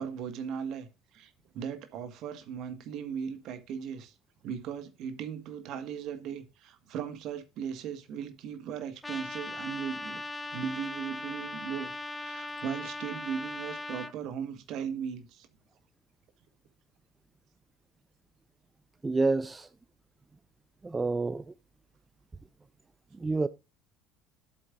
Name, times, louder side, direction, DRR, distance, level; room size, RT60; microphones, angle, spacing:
voice 1, 0.0-4.1 4.4-10.2 10.5-15.5, right 7 dB, 55° right, 1.7 m, -38 dB
Trumpet, 9.0-14.1, left 2 dB, 15° left, 1.2 m, -39 dB
voice 2, 19.0-19.7 20.8-21.4 23.2-23.5, right 3 dB, 20° right, 0.5 m, -28 dB
12.0 x 7.9 x 2.5 m
hypercardioid pair, 65°, 0 cm